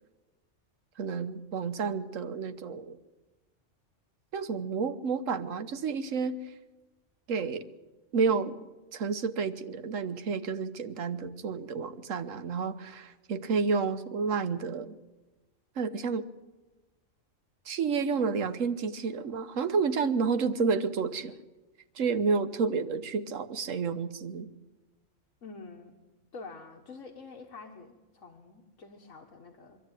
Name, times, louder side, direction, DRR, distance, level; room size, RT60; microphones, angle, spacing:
voice 1, 1.0-3.0 4.3-6.5 7.3-7.7 8.1-8.6 8.9-14.9 15.8-16.3 17.6-21.3 21.9-24.5, right 5 dB, 85° right, 10 dB, 1.4 m, -30 dB
voice 2, 25.4-25.9 26.3-29.8, left 4 dB, 90° left, 1 dB, 1.8 m, -47 dB
24.0 x 13.0 x 9.1 m, 1.2 s
omnidirectional pair, 1.3 m